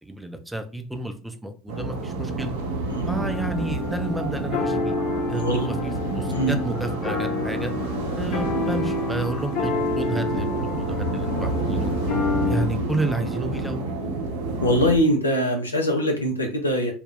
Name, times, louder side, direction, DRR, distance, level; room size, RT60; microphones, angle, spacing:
voice 1, 0.0-2.5 3.1-5.0 5.3-7.7 8.2-10.5 10.8-11.9 12.5-13.8, right 1 dB, 5° right, 6 dB, 0.5 m, -31 dB
sound 1, 1.7-14.9, right 2 dB, 70° right, 0.6 m, -29 dB
sound 2, 3.1-12.7, left 4 dB, 50° left, 0.8 m, -29 dB
voice 2, 5.3-5.7 6.3-6.6 14.6-16.9, equal, 85° left, 2 dB, 0.4 m, -22 dB
2.3 x 2.1 x 3.4 m, 0.39 s
figure-of-eight pair, 70°, 0 cm